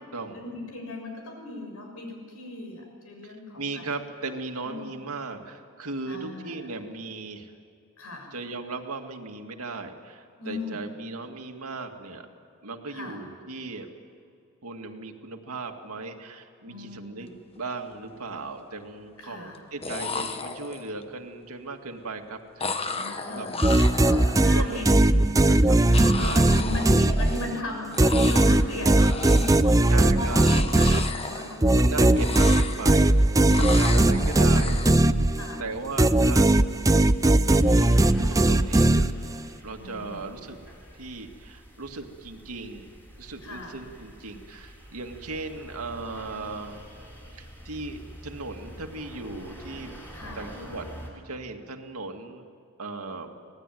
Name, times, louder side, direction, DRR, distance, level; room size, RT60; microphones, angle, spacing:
voice 1, 0.3-3.9 4.6-4.9 6.0-6.6 8.0-8.3 10.4-10.8 12.9-13.2 16.7-17.3 19.2-19.6 22.9-25.1 25.7-32.2 35.4-35.6 39.8-40.3 43.4-43.8 50.1-50.5, left 2 dB, 75° left, 2 dB, 6.8 m, -37 dB
voice 2, 3.5-7.5 8.3-12.3 12.6-13.9 14.6-22.9 23.3-23.5 24.4-25.8 26.2-26.5 29.9-31.0 31.7-33.3 33.5-34.8 35.6-36.5 37.5-39.1 39.6-40.6 41.0-42.9 43.2-46.8 47.4-50.0 50.3-50.9 51.1-52.5 52.8-53.3, right 3 dB, 80° right, 4 dB, 2.1 m, -37 dB
sound 1, 17.4-17.6 17.9-18.5 19.5-19.6 19.8-21.0 22.6-24.8 25.9-27.7 27.9-28.7 28.9-29.8 30.2-31.8 32.1-33.1 33.5-35.0, left 4 dB, 25° left, 1.1 m, -34 dB
sound 2, 23.6-27.6 28.0-35.6 36.0-39.5, right 1 dB, 15° right, 0.5 m, -19 dB
sound 3, 31.9-51.1, equal, 10° left, 5.7 m, -47 dB
25.5 x 18.5 x 9.2 m, 2.4 s
head